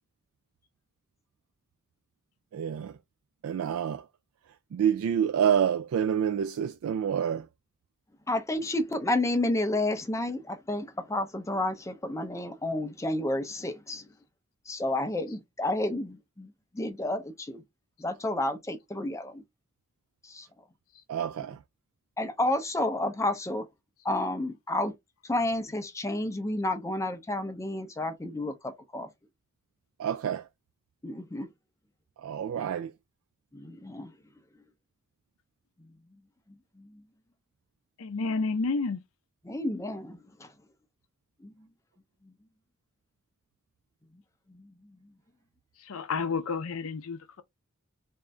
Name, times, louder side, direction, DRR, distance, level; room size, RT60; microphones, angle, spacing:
voice 1, 2.5-3.0 3.4-4.0 4.7-7.5 21.1-21.6 30.0-30.5 32.2-32.9, right 8 dB, 75° right, 0.3 m, -28 dB
voice 2, 8.3-14.1 14.7-17.6 18.0-19.4 20.2-20.5 22.2-23.7 24.0-24.9 25.2-29.1 31.0-31.5 33.5-34.1 35.8-35.9 36.8-37.0 39.4-40.5 41.4-41.5 42.2-42.3 44.5-44.7, left 1 dB, 15° left, 0.6 m, -31 dB
voice 3, 38.0-39.0 45.9-47.4, left 4 dB, 75° left, 0.6 m, -30 dB
3.6 x 2.6 x 3.2 m
head